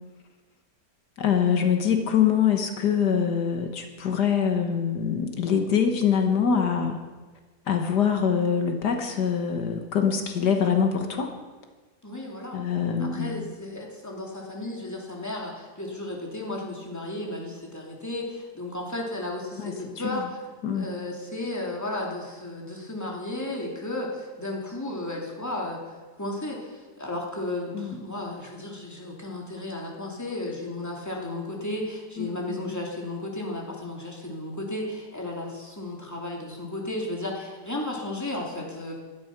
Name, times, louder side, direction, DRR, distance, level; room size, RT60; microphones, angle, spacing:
voice 1, 1.2-7.0 7.7-11.3 12.5-13.5 19.6-19.7 20.0-20.3 20.6-20.9 27.7-28.0 32.2-32.8, left 7 dB, 75° left, 5 dB, 1.9 m, -24 dB
voice 2, 12.0-12.6 13.0-20.4 20.7-25.8 26.2-38.9, left 1 dB, 10° left, -1 dB, 2.7 m, -34 dB
17.0 x 12.5 x 6.0 m, 1.3 s
omnidirectional pair, 1.8 m